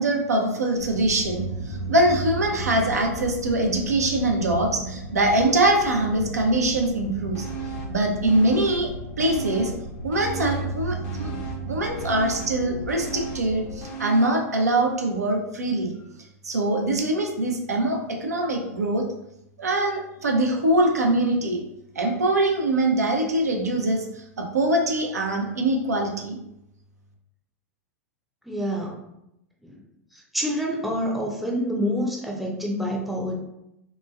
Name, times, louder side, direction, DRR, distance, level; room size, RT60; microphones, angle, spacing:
voice 1, 0.0-7.5 7.9-8.9 9.2-9.7 10.0-11.3 11.7-15.9 16.4-19.0 19.6-21.6 22.0-24.1 24.4-26.4, right 1 dB, 85° right, 1 dB, 0.5 m, -23 dB
sound 1, 0.8-13.8, right 2 dB, 85° left, 0.6 m, -34 dB
sound 2, 7.3-8.0 8.3-9.8 10.1-14.5 14.8-14.9, right 6 dB, 45° left, 0.6 m, -37 dB
voice 2, 28.5-29.0 29.6-29.8 30.1-33.4, equal, ahead, -1 dB, 0.5 m, -27 dB
3.0 x 2.2 x 2.2 m, 0.84 s
hypercardioid pair, 95°, 8 cm